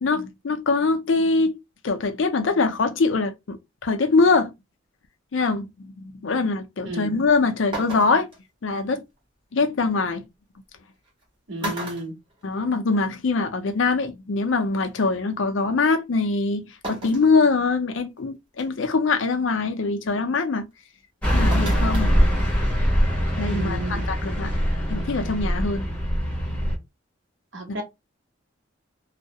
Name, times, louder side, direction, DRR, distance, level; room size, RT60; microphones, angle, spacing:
voice 1, 0.0-1.6 1.8-4.5 5.3-8.3 8.6-9.0 9.5-10.3 11.6-11.7 12.4-20.7 21.3-22.2 23.4-24.6 24.9-25.9, left 3 dB, 70° left, 0.5 m, -23 dB
sound 1, 7.2-7.3 7.7-8.4 10.0-10.1 11.1-11.2 11.6-13.0 13.3-13.4 14.7-14.8 16.8-17.3 17.9-18.0 18.6-18.9 21.5-22.1 22.4-22.5, right 1 dB, 25° right, 1.1 m, -34 dB
voice 2, 11.5-12.1 23.5-24.1 27.5-27.8, right 1 dB, 65° right, 0.9 m, -32 dB
Car passing by / Truck, 21.2-26.8, equal, 5° left, 0.9 m, -22 dB
2.3 x 2.1 x 2.7 m
head